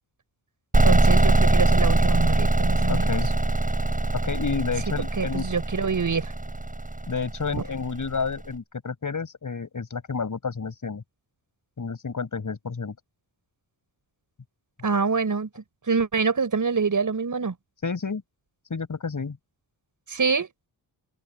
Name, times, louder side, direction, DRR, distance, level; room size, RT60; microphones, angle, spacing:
sound 1, 0.7-8.3, right 2 dB, 20° right, 7.7 m, -22 dB
voice 1, 0.8-3.1 5.2-6.3 7.5-7.6 14.8-17.5 20.1-20.5, right 5 dB, 45° right, 6.3 m, -25 dB
voice 2, 2.9-3.3 4.1-5.5 7.1-11.0 11.8-12.9 17.8-18.2 18.7-19.4, left 5 dB, 45° left, 7.1 m, -30 dB
open air
cardioid pair, 65°, 42 cm